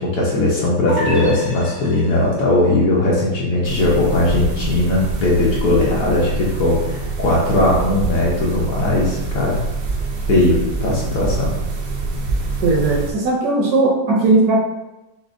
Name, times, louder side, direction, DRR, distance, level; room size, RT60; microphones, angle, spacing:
voice 1, 0.0-9.6 10.3-11.5, left 2 dB, 60° left, -5 dB, 1.0 m, -18 dB
sound 1, 0.9-2.5, equal, 20° left, 0.6 m, -30 dB
sound 2, 3.6-13.1, right 3 dB, 85° right, 1.4 m, -25 dB
voice 2, 12.6-14.6, right 2 dB, 70° right, -2 dB, 1.0 m, -17 dB
5.9 x 2.1 x 2.5 m, 1.0 s
omnidirectional pair, 2.0 m